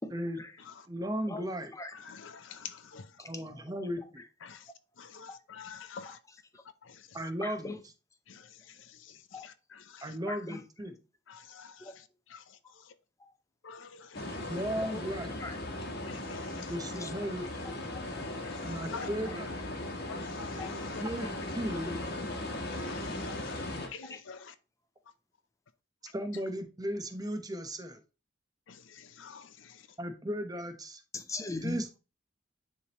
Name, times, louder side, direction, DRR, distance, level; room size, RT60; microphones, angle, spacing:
voice 1, 0.0-0.7 1.3-2.0 3.2-4.3 4.7-4.8 5.3-5.4 6.0-6.6 7.4-7.9 9.3-9.5 10.3-10.8 11.8-12.0 12.6-12.7 13.2-13.4 14.8-15.6 16.4-16.5 16.9-18.1 18.8-19.7 20.6-20.9 21.2-21.5 21.8-22.2 23.3-24.2 31.1-31.9, left 3 dB, 15° left, 0.7 m, -44 dB
voice 2, 0.9-1.7 3.3-4.2 7.1-7.7 10.0-10.9 14.5-15.3 16.7-17.7 18.6-19.5 21.0-21.3 21.6-21.9 26.1-28.0 30.0-31.0 31.6-32.0, equal, 20° right, 0.9 m, -35 dB
voice 3, 1.9-3.2 4.4-4.7 5.0-6.2 6.8-7.3 8.3-10.2 11.3-13.0 13.6-14.6 16.0-17.1 18.4-19.1 20.1-21.6 22.0-22.1 22.7-24.5 28.7-30.0, left 6 dB, 85° left, 0.6 m, -48 dB
sound 1, 14.1-23.9, left 1 dB, 55° left, 1.2 m, -38 dB
9.9 x 3.4 x 3.0 m
head